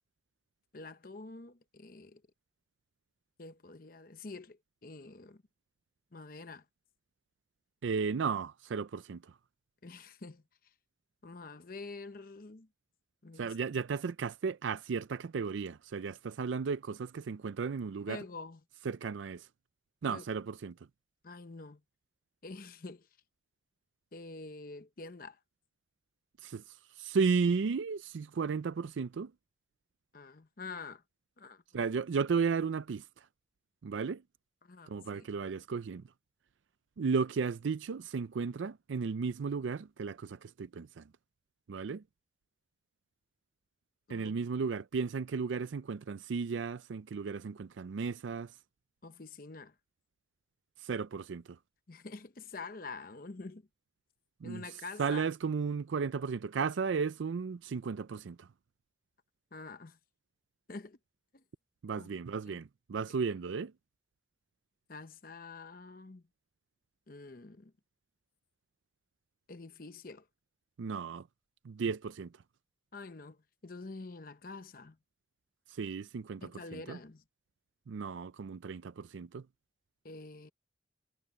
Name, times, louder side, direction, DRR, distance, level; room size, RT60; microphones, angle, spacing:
voice 1, 0.7-2.2 3.4-5.4 6.1-6.7 9.8-10.7 11.2-12.7 13.2-13.6 18.1-18.6 20.1-20.2 21.2-21.8 22.4-23.1 24.1-25.4 30.1-31.0 31.4-31.6 34.6-35.3 44.1-44.4 49.0-49.8 51.9-53.7 54.4-55.3 59.5-60.0 60.7-61.0 61.3-61.4 62.0-62.1 62.5-62.6 63.2-63.3 64.9-66.2 67.1-67.7 69.5-70.3 72.9-75.0 76.4-77.2 80.0-80.5, left 3 dB, 50° left, 0.8 m, -47 dB
voice 2, 7.8-9.3 13.4-18.2 18.9-19.5 20.0-20.7 26.4-29.3 31.7-33.3 33.8-34.2 34.9-36.0 37.0-41.0 41.7-42.0 44.1-48.5 50.8-51.6 54.4-54.6 55.0-58.5 61.8-63.7 70.8-71.3 71.6-72.3 75.7-77.0 77.9-79.4, right 5 dB, 90° right, 0.4 m, -34 dB
head